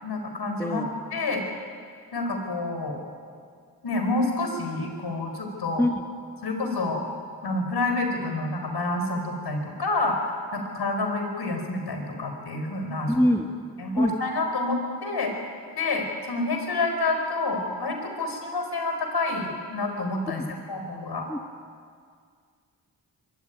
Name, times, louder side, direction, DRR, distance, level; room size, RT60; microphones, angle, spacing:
voice 1, 0.0-1.4 2.1-3.0 3.8-5.8 6.4-7.0 7.4-13.1 13.8-15.3 15.8-20.4 20.7-21.3, left 2 dB, 65° left, 4 dB, 4.6 m, -28 dB
voice 2, 13.1-13.5 13.9-14.1 20.4-20.5 21.3-21.4, left 1 dB, 5° left, 5 dB, 1.8 m, -23 dB
22.5 x 14.0 x 9.2 m, 2.1 s
supercardioid pair, 40°, 43 cm